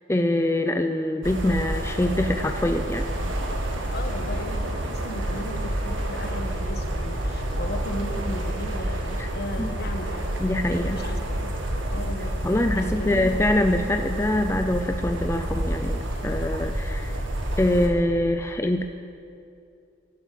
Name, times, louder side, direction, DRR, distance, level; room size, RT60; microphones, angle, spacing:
voice 1, 0.1-3.0 9.2-9.3 9.6-9.7 10.4-11.0 12.4-17.2 17.6-18.8, left 1 dB, 15° left, 6 dB, 0.4 m, -24 dB
sound 1, 1.2-17.9, right 1 dB, 75° right, 1.7 m, -29 dB
voice 2, 3.9-10.3 10.7-11.6 11.9-12.3 12.7-13.6, equal, 55° left, 5 dB, 1.2 m, -36 dB
12.0 x 11.5 x 7.4 m, 2.5 s
head